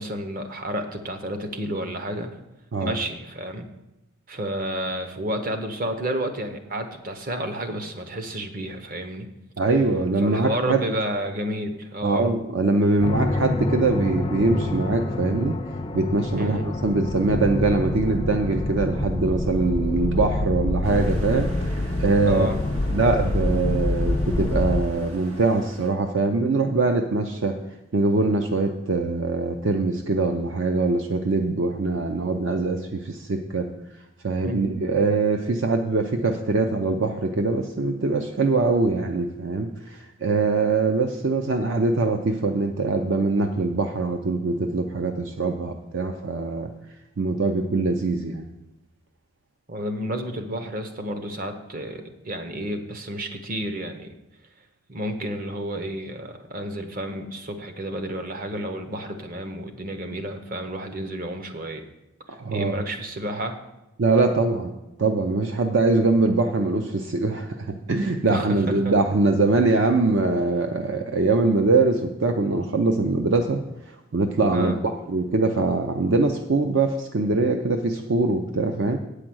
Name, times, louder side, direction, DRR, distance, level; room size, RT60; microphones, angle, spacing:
voice 1, 0.0-2.4 2.8-3.7 4.3-9.3 10.2-12.3 16.4-16.7 22.2-22.6 34.4-34.8 49.7-54.1 54.9-61.8 62.5-63.6 68.3-69.0 74.5-74.8, right 1 dB, 45° right, 6 dB, 0.9 m, -31 dB
voice 2, 9.6-10.8 12.0-15.6 15.9-22.5 22.9-27.6 27.9-33.7 34.2-46.7 47.2-48.4 62.4-62.8 64.0-64.7 65.0-73.6 74.1-79.0, right 3 dB, 60° right, 5 dB, 0.6 m, -23 dB
sound 1, 13.0-24.8, left 2 dB, 20° left, 0.4 m, -26 dB
sound 2, 20.8-25.9, equal, 85° right, 1.7 m, -42 dB
8.7 x 4.9 x 7.7 m, 0.95 s
head